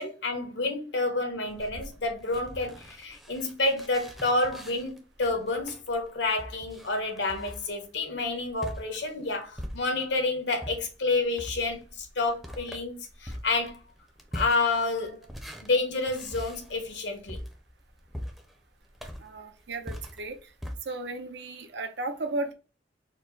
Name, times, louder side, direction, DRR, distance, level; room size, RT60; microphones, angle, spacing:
voice 1, 0.0-13.8 14.3-15.3 15.6-17.4, left 3 dB, 80° left, 1.2 m, -29 dB
sound 1, 1.5-10.2 10.6-20.7, equal, ahead, 0.6 m, -43 dB
voice 2, 19.2-20.4 20.9-22.5, right 2 dB, 70° right, 0.7 m, -34 dB
4.4 x 2.1 x 4.6 m
head